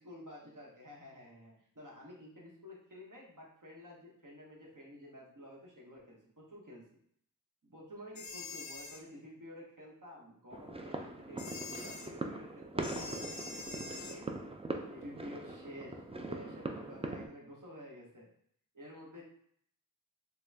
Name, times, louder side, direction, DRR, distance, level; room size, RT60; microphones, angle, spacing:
voice 1, 0.0-6.8 7.6-14.3 14.9-18.3 18.7-19.2, equal, 65° right, -4 dB, 1.1 m, -51 dB
sound 1, 8.2-9.0 11.4-12.1 12.8-14.2, left 4 dB, 55° left, 0.4 m, -45 dB
sound 2, 10.5-17.3, right 2 dB, 20° right, 0.3 m, -41 dB
3.5 x 2.2 x 3.3 m, 0.66 s
wide cardioid pair, 45°, 34 cm